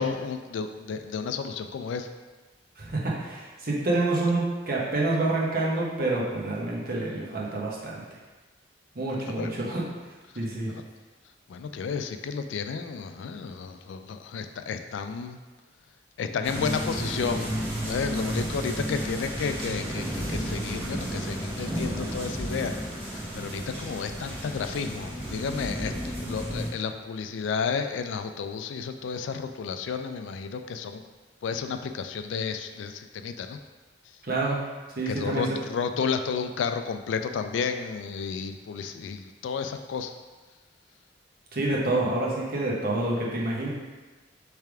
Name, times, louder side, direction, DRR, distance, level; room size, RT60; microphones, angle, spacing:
voice 1, 0.0-2.1 9.3-9.5 10.7-10.8 11.5-15.4 16.2-17.5 17.8-22.7 23.1-31.0 31.4-33.6 35.1-40.1, left 5 dB, 70° left, 7 dB, 0.3 m, -32 dB
voice 2, 2.8-8.0 8.9-9.8 10.3-10.7 34.2-34.6 35.0-35.5 41.5-43.7, right 2 dB, 50° right, -4 dB, 1.0 m, -27 dB
sound 1, 16.4-26.7, equal, 30° right, 1.3 m, -32 dB
3.4 x 3.4 x 4.6 m, 1.3 s
head